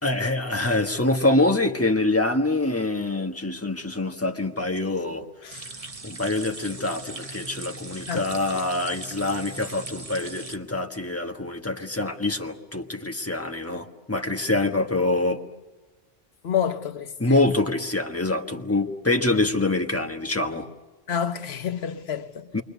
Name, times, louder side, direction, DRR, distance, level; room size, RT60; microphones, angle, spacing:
voice 1, 0.0-5.7 6.0-15.4 17.2-20.7 22.5-22.6, left 2 dB, 15° left, 1.5 m, -25 dB
sound 1, 5.5-10.6, right 3 dB, 35° right, 1.3 m, -39 dB
voice 2, 16.4-17.4 21.1-22.6, left 8 dB, 85° left, 1.2 m, -29 dB
28.5 x 23.0 x 6.9 m
omnidirectional pair, 1.0 m